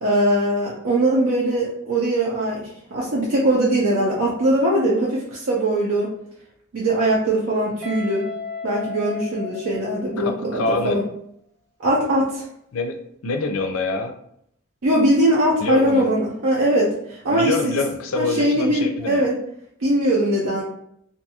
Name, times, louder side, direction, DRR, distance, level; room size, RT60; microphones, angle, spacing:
voice 1, 0.0-6.1 6.7-8.3 8.6-11.0 11.8-12.4 14.8-17.7 18.2-19.3 19.8-20.6, right 1 dB, 75° right, -4 dB, 0.5 m, -21 dB
Guitar, 7.8-10.6, left 4 dB, 5° right, 0.4 m, -34 dB
voice 2, 10.2-11.0 12.7-13.0 13.2-14.1 15.6-16.1 17.3-19.2, left 3 dB, 85° left, 5 dB, 0.4 m, -25 dB
2.6 x 2.3 x 2.7 m, 0.72 s
head